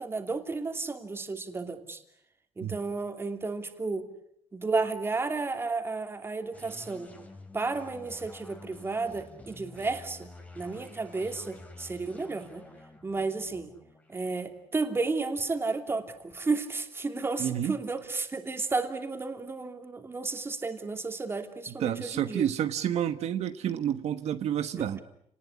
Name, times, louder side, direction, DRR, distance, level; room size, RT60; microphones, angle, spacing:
voice 1, 0.0-2.0 2.6-4.1 4.5-7.1 7.5-10.3 10.5-12.6 13.0-13.7 14.1-22.5 24.8-25.0, right 3 dB, 20° right, 2.9 m, -32 dB
sound 1, 6.5-16.0, left 2 dB, 15° left, 3.4 m, -50 dB
voice 2, 17.4-17.7 21.8-25.0, right 10 dB, 75° right, 1.3 m, -29 dB
30.0 x 19.5 x 9.9 m
cardioid pair, 145°, 11 cm